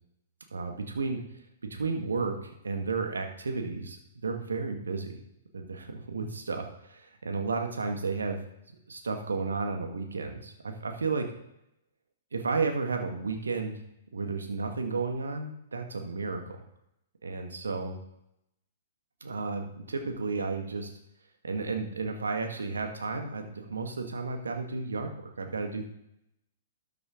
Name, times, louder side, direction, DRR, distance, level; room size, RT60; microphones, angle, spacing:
voice 1, 0.5-1.2 1.7-2.3 2.6-4.0 4.2-5.2 5.5-8.4 8.9-11.2 12.3-13.8 14.1-16.6 17.2-18.0 19.2-20.9 21.4-25.9, right 4 dB, 80° right, 4 dB, 1.6 m, -32 dB
12.5 x 6.7 x 3.8 m, 0.81 s
figure-of-eight pair, 115°, 0 cm